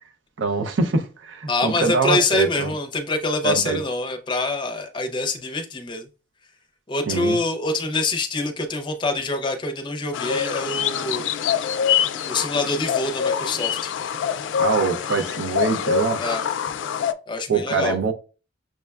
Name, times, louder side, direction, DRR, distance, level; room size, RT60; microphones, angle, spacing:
voice 1, 0.4-2.7 3.4-3.8 7.1-7.4 14.6-16.2 17.5-18.1, right 4 dB, 90° right, 0.6 m, -23 dB
voice 2, 1.5-6.1 6.9-11.2 11.7-11.9 12.3-13.9 16.2-16.4 17.3-18.0, left 2 dB, 25° left, 0.5 m, -25 dB
sound 1, 10.1-17.1, left 8 dB, 90° left, 0.3 m, -25 dB
6.2 x 2.2 x 2.3 m
head